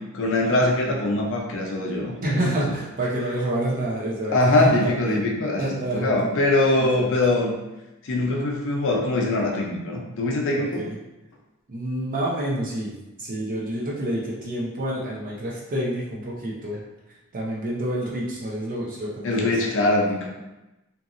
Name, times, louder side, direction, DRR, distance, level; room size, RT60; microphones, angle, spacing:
voice 1, 0.1-2.6 4.3-5.7 5.9-7.5 8.0-10.8 19.2-20.3, left 2 dB, 60° left, -1 dB, 0.6 m, -22 dB
voice 2, 2.2-5.2 5.6-6.3 6.8-7.1 10.8-10.9 11.7-12.9 13.2-16.8 17.3-19.5, right 1 dB, 40° right, -4 dB, 0.5 m, -28 dB
2.8 x 2.6 x 2.5 m, 1.0 s
head